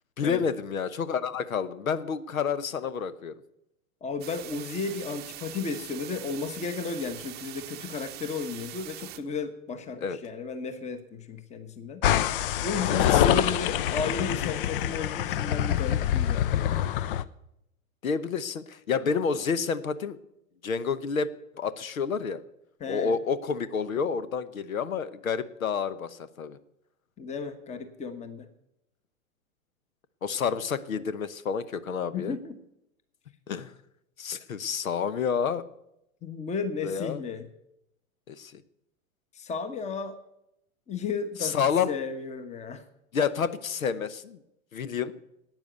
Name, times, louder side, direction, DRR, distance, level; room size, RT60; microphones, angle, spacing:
voice 1, 0.2-3.3 10.0-10.2 13.0-13.4 18.0-20.2 20.6-21.3 21.6-22.4 22.9-26.6 30.2-32.4 33.5-33.7 34.2-35.6 36.8-37.2 38.3-38.6 41.4-41.9 43.1-44.4 44.7-45.2, left 6 dB, 75° left, 15 dB, 1.0 m, -29 dB
voice 2, 4.0-12.1 12.6-16.8 22.8-23.2 27.2-28.5 32.1-32.6 36.2-37.5 39.3-40.2 40.9-42.8, left 5 dB, 15° left, 11 dB, 1.2 m, -34 dB
sound 1, 4.2-9.2, right 14 dB, 25° right, 0.8 m, -43 dB
sound 2, 12.0-17.2, left 11 dB, 40° left, 0.6 m, -25 dB
12.0 x 9.2 x 8.1 m, 0.82 s
figure-of-eight pair, 105°, 42 cm